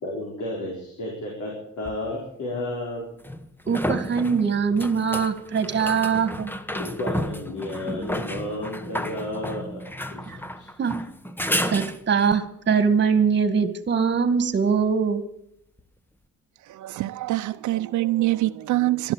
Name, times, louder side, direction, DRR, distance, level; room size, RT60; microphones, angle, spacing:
voice 1, 0.0-3.0 6.7-9.8 10.1-10.3 10.6-10.7, left 1 dB, 75° left, 4.7 m, -32 dB
sound 1, 1.9-2.0 3.2-12.4 15.8-15.9, equal, 5° left, 1.2 m, -31 dB
voice 2, 3.7-6.5 10.3-10.4 10.8-11.0 11.7-15.2, right 6 dB, 35° right, 2.0 m, -22 dB
voice 3, 16.6-19.1, right 16 dB, 75° right, 0.7 m, -25 dB
13.0 x 11.0 x 8.9 m
cardioid pair, 90°, 30 cm